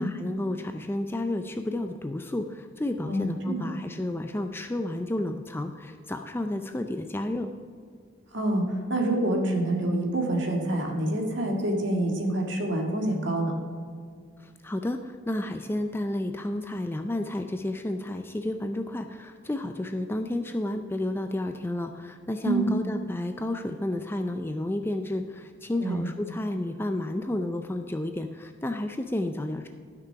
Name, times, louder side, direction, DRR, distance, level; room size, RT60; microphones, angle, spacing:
voice 1, 0.0-7.5 14.4-29.7, left 1 dB, 10° left, 6 dB, 0.3 m, -31 dB
voice 2, 3.1-3.6 8.3-13.5 22.4-22.7 25.8-26.0, right 1 dB, 55° right, 1 dB, 1.7 m, -27 dB
12.0 x 6.0 x 5.7 m, 2.1 s
head